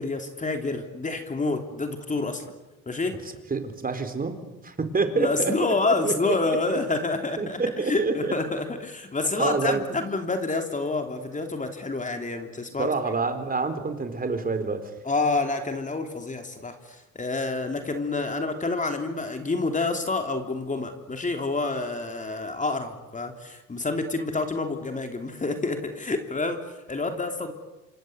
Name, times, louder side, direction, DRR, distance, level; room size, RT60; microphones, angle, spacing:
voice 1, 0.0-2.5 2.9-3.2 5.2-12.9 15.0-27.5, left 3 dB, 25° left, 5 dB, 3.5 m, -28 dB
voice 2, 3.5-5.7 6.0-6.8 7.4-8.3 9.2-9.8 12.8-14.9, right 4 dB, 30° right, 9 dB, 4.3 m, -27 dB
27.5 x 25.5 x 8.2 m, 1.1 s
cardioid pair, 85°, 30 cm